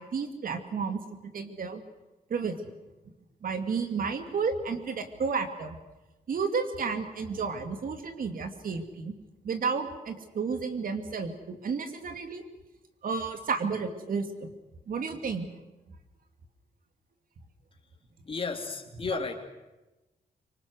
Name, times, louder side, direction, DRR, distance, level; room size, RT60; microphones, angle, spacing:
voice 1, 0.0-1.8 2.3-2.6 3.4-5.8 6.3-9.1 9.4-12.4 13.0-14.5 14.9-15.5 19.1-19.2, right 5 dB, 65° right, 7 dB, 2.7 m, -32 dB
voice 2, 18.2-19.3, left 4 dB, 35° left, 3 dB, 3.2 m, -33 dB
25.5 x 25.0 x 6.5 m, 1.0 s
wide cardioid pair, 135°, 15 cm